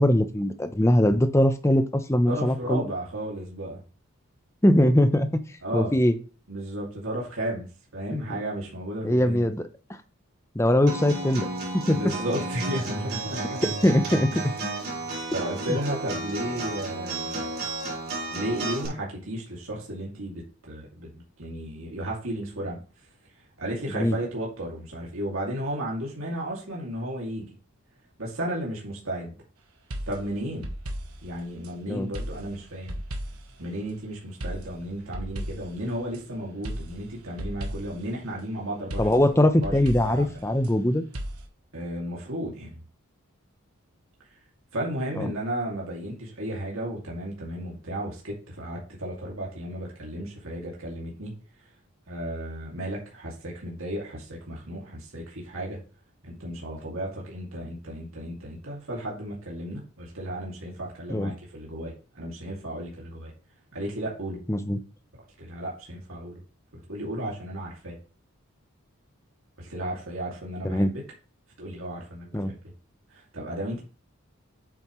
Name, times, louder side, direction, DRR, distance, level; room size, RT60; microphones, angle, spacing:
voice 1, 0.0-2.8 4.6-5.4 5.7-6.1 8.1-8.2 9.0-9.6 10.5-11.5 11.9-12.0 13.8-14.3 23.9-24.2 31.9-32.1 39.0-41.0 45.2-45.3 61.1-61.3 64.5-64.8 70.6-70.9 72.3-72.5, left 1 dB, 10° left, 9 dB, 0.7 m, -21 dB
voice 2, 2.3-3.8 5.6-6.0 6.5-7.7 7.9-9.5 11.9-13.6 15.3-17.5 18.3-22.8 23.6-27.6 28.2-29.4 30.1-30.7 31.2-33.0 33.6-39.1 39.6-39.7 40.0-40.3 41.7-42.7 44.7-51.3 52.1-55.8 56.2-63.3 63.7-64.4 65.4-66.4 66.7-68.0 69.6-70.9 71.6-72.7 73.1-73.8, right 1 dB, 70° right, -3 dB, 2.5 m, -34 dB
Acoustic guitar, 10.9-18.9, right 2 dB, 45° right, 4.5 m, -32 dB
sound 1, 29.9-31.7 32.1-33.6 34.4-36.2 36.6-38.1 38.9-40.7 41.1-41.5, equal, 90° right, 1.5 m, -36 dB
8.6 x 7.2 x 3.1 m, 0.36 s
head